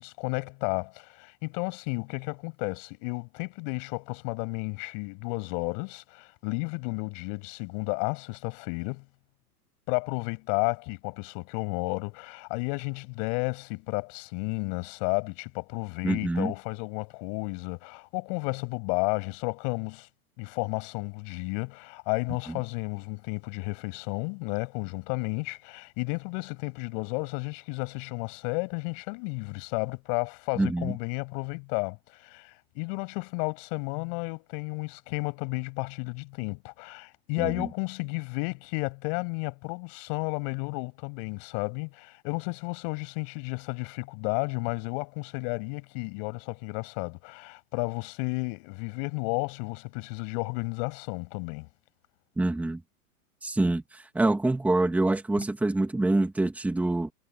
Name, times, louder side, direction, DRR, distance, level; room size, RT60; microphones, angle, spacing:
voice 1, 0.0-9.0 9.9-20.1 20.4-51.7, left 37 dB, 35° left, 7.5 m, -32 dB
voice 2, 16.0-16.5 22.5-22.6 30.6-30.9 37.4-37.7 52.4-52.8 53.4-57.1, right 2 dB, 5° right, 2.6 m, -26 dB
hypercardioid pair, 155°, 45 cm